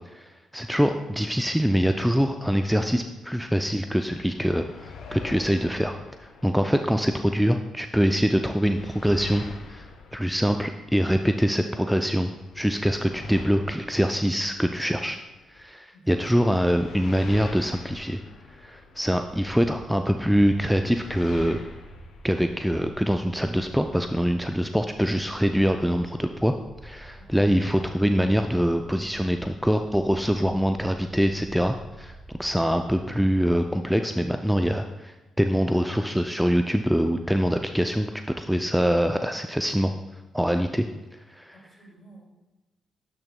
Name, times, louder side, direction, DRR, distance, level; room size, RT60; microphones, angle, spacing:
voice 1, 0.1-9.4 9.7-9.9 10.1-15.2 15.5-18.2 18.6-21.6 22.2-26.5 26.8-38.1 38.4-39.9 40.3-40.9 41.3-41.5, equal, ahead, 6 dB, 0.4 m, -24 dB
sound 1, 3.9-7.6 7.9-11.6 12.0-15.6 16.1-19.6 20.1-22.6, left 4 dB, 65° left, 0.7 m, -45 dB
voice 2, 15.9-16.5 19.3-19.5 27.1-27.4 40.7-40.8 41.5-42.2, right 1 dB, 45° left, -1 dB, 2.2 m, -52 dB
sound 2, 19.1-33.6, right 2 dB, 65° right, 1.1 m, -47 dB
8.6 x 6.4 x 2.2 m, 1.1 s
hypercardioid pair, 40°, 0 cm